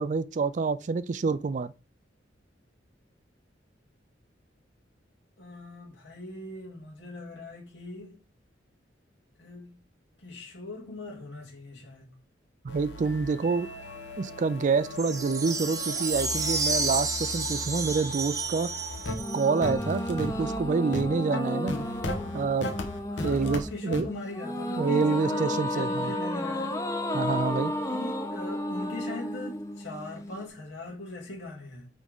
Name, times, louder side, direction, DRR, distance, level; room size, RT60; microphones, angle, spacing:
voice 1, 0.0-1.7 12.6-13.7 14.2-18.7 19.3-21.7 22.3-22.7 23.2-24.1 24.8-26.1 27.1-27.7, right 4 dB, 45° right, 0.4 m, -27 dB
voice 2, 5.4-8.1 9.4-9.8 10.2-12.1 23.1-26.8 27.8-31.9, left 2 dB, 90° left, 2.4 m, -40 dB
sound 1, 12.7-23.6 23.9-24.0, left 2 dB, 75° left, 1.0 m, -37 dB
sound 2, 15.0-19.7, right 3 dB, 20° right, 0.9 m, -31 dB
sound 3, 19.1-30.5, left 1 dB, 15° left, 0.7 m, -33 dB
9.1 x 3.6 x 3.6 m
head